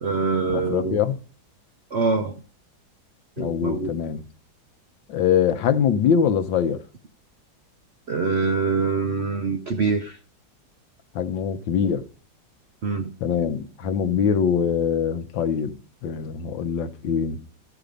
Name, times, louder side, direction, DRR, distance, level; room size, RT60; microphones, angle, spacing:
voice 1, 0.0-1.0 1.9-2.4 3.4-3.9 8.1-10.2 12.8-13.1, right 4 dB, 70° right, 0.6 m, -24 dB
voice 2, 0.5-1.1 3.4-4.2 5.1-6.8 11.1-12.0 13.2-15.7 16.0-17.4, left 7 dB, 80° left, 1.5 m, -23 dB
13.0 x 4.9 x 5.2 m
omnidirectional pair, 2.1 m